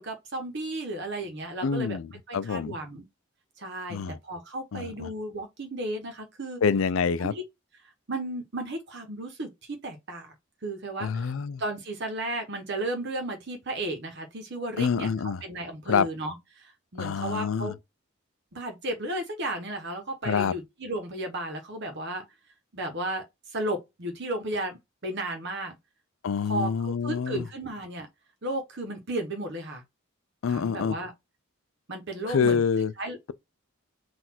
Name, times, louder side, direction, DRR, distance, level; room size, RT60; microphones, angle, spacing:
voice 1, 0.0-2.0 2.3-3.0 3.6-6.6 7.2-7.4 8.1-10.3 10.6-11.3 11.6-15.1 15.4-17.7 18.5-22.2 22.7-25.8 26.5-28.1 28.4-29.8 30.5-31.1 31.9-32.6 33.0-33.2, right 1 dB, 55° right, 1.0 m, -34 dB
voice 2, 1.6-2.8 3.9-4.2 4.7-5.1 6.6-7.3 11.0-11.6 14.8-15.4 15.9-16.1 17.0-17.7 20.2-20.5 26.2-27.5 30.4-31.0 32.3-32.9, left 6 dB, 70° left, 0.4 m, -26 dB
4.0 x 2.5 x 4.3 m
head